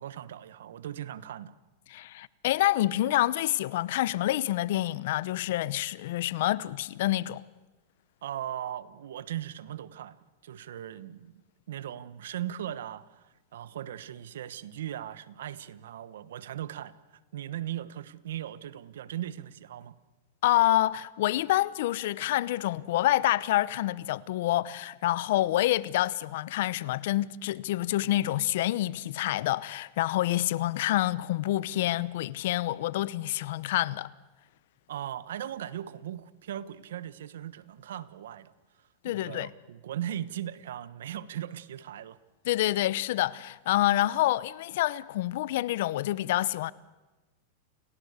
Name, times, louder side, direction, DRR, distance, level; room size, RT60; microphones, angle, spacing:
voice 1, 0.0-1.5 8.2-10.2 10.4-11.4 11.7-16.9 17.3-20.0 34.9-38.5 39.0-42.2, right 11 dB, 80° right, 1.1 m, -38 dB
voice 2, 1.9-7.4 20.4-34.1 39.0-39.5 42.4-46.7, left 15 dB, 65° left, 0.8 m, -27 dB
29.0 x 17.5 x 8.2 m
supercardioid pair, 135°, 0 cm